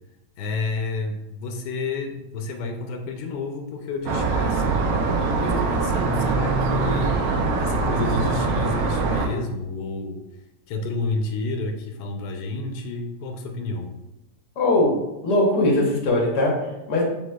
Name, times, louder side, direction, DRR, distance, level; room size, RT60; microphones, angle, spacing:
voice 1, 0.4-4.8 5.4-7.2 7.6-10.2 10.7-13.9, left 3 dB, 90° left, 4 dB, 1.3 m, -30 dB
sound 1, 4.1-9.3, right 3 dB, 70° right, 0.9 m, -23 dB
voice 2, 14.6-15.0 15.2-17.0, left 1 dB, 70° left, -1 dB, 1.6 m, -20 dB
7.1 x 3.1 x 2.2 m, 0.96 s
omnidirectional pair, 1.9 m